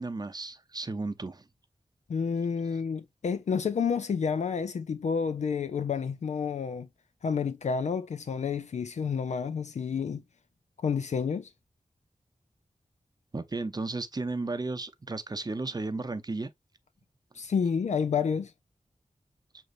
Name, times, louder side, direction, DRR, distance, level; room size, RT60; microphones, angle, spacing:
voice 1, 0.0-1.4 13.3-16.5, right 3 dB, 35° right, 0.7 m, -34 dB
voice 2, 2.1-6.9 7.2-10.2 10.8-11.5 17.3-18.5, left 6 dB, 70° left, 0.4 m, -29 dB
6.3 x 3.0 x 2.5 m
wide cardioid pair, 85°, 12 cm